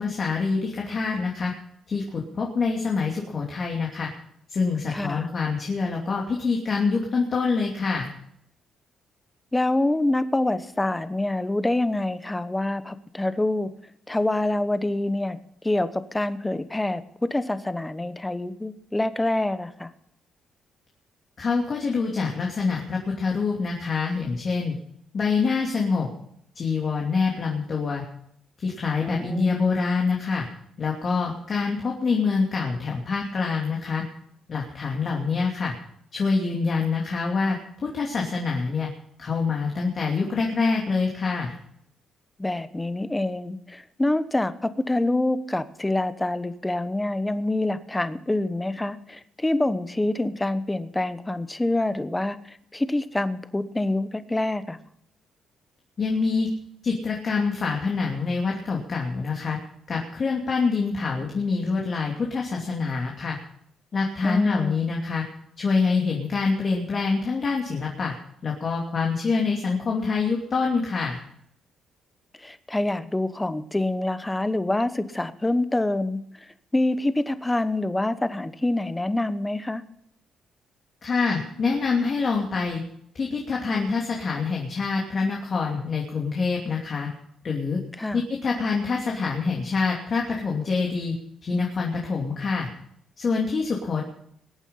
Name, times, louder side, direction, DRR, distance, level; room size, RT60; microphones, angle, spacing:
voice 1, 0.0-1.5 1.9-4.1 4.5-8.1 21.4-24.7 25.1-26.1 26.5-28.0 28.6-30.5 30.8-34.0 34.5-35.7 36.1-38.9 39.2-41.5 56.0-56.5 56.8-59.6 59.9-63.4 63.9-65.2 65.6-68.1 68.4-71.2 81.0-82.8 83.1-87.1 87.4-87.8 88.1-91.1 91.4-92.7 93.2-94.0, left 4 dB, 45° left, -1 dB, 2.8 m, -25 dB
voice 2, 4.9-5.3 9.5-13.7 14.1-15.4 15.6-17.0 17.3-19.9 29.0-29.6 42.4-54.8 64.2-64.8 72.4-79.8 88.0-88.2, left 2 dB, 10° left, 12 dB, 1.0 m, -26 dB
21.0 x 9.1 x 5.7 m, 0.72 s
cardioid pair, 90°, 0 cm